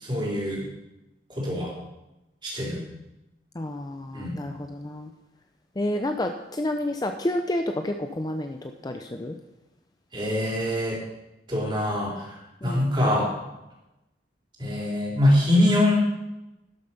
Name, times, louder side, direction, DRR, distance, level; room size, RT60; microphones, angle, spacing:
voice 1, 0.1-0.6 1.3-1.7 2.4-2.8 4.1-4.4 10.1-11.0 11.5-12.3 12.6-13.3 14.6-15.9, left 1 dB, 25° right, -4 dB, 3.9 m, -23 dB
voice 2, 3.6-5.1 5.8-9.4 12.6-12.9, left 1 dB, 20° left, 6 dB, 0.5 m, -30 dB
12.0 x 7.1 x 5.8 m, 0.95 s
head